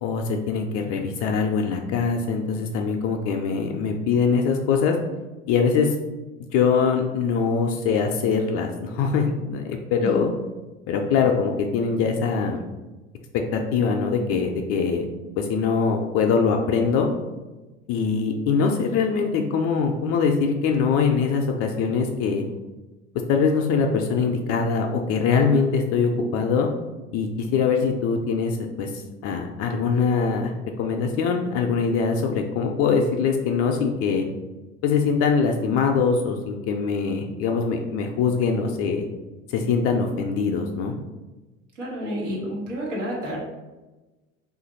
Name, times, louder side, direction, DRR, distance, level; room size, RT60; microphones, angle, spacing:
voice 1, 0.0-4.9 5.5-6.0 6.5-10.3 10.9-12.6 13.5-15.1 15.4-17.1 17.9-22.4 23.3-26.7 27.1-30.5 30.8-34.2 34.8-39.1 39.5-40.9, left 5 dB, 40° left, 3 dB, 0.4 m, -23 dB
voice 2, 41.7-43.4, equal, 90° right, -4 dB, 1.3 m, -30 dB
2.8 x 2.5 x 3.9 m, 1.2 s
hypercardioid pair, 85°, 35 cm